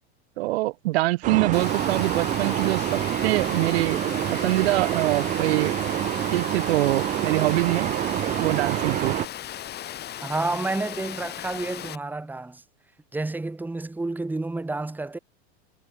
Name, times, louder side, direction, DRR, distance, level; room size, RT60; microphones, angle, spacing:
voice 1, 0.4-4.0 4.4-5.8 6.3-7.9 8.4-9.2, right 19 dB, 70° right, 1.0 m, -24 dB
sound 1, 1.2-9.3, right 13 dB, 25° right, 0.4 m, -27 dB
Water, 1.5-12.0, left 12 dB, 30° left, 1.1 m, -37 dB
voice 2, 10.2-12.6 13.1-15.2, right 2 dB, 5° right, 1.2 m, -30 dB
hypercardioid pair, 110°, 33 cm